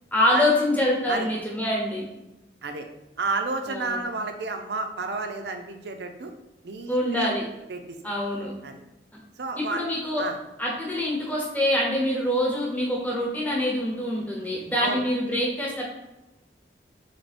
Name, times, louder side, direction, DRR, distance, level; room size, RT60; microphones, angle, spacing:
voice 1, 0.1-2.1 3.7-4.0 6.9-7.4 8.0-8.5 9.7-10.2 10.6-15.8, left 1 dB, 10° left, -4 dB, 1.0 m, -25 dB
voice 2, 3.2-6.3 6.6-7.3 7.7-8.0 8.6-8.8 9.4-9.8 10.2-10.4 14.8-15.0, right 3 dB, 75° right, 6 dB, 0.5 m, -31 dB
3.4 x 3.4 x 4.1 m, 0.97 s
head